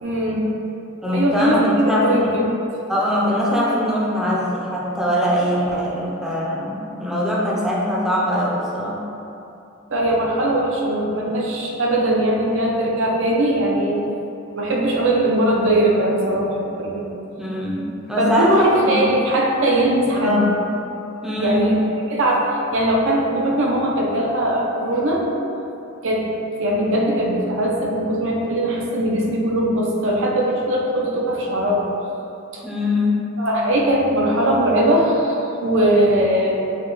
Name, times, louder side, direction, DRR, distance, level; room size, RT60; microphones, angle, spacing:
voice 1, 0.0-0.5 1.1-2.3 9.9-14.0 14.5-17.1 18.2-20.4 21.3-21.8 22.1-25.2 26.0-26.2 26.6-31.9 32.5-32.6 33.4-36.5, right 1 dB, 65° right, -2 dB, 0.6 m, -20 dB
voice 2, 1.0-2.4 2.9-9.1 17.4-17.8 18.1-19.0 20.1-20.5 21.2-21.8 32.6-33.3, left 1 dB, 5° right, -6 dB, 0.5 m, -22 dB
4.8 x 2.2 x 3.0 m, 2.8 s
head